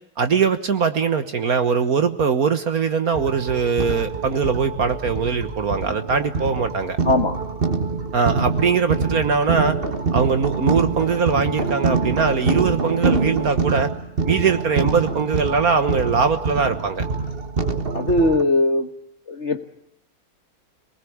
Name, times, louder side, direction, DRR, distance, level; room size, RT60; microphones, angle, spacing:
voice 1, 0.2-7.0 8.1-9.8 10.1-13.9 14.2-17.1, right 5 dB, 50° right, 9 dB, 1.6 m, -21 dB
sound 1, 3.1-18.4, right 4 dB, 30° right, 1.5 m, -25 dB
voice 2, 7.0-7.4 17.9-18.9 19.3-19.7, left 2 dB, 40° left, 7 dB, 1.4 m, -19 dB
27.0 x 20.0 x 8.7 m, 0.76 s
omnidirectional pair, 2.2 m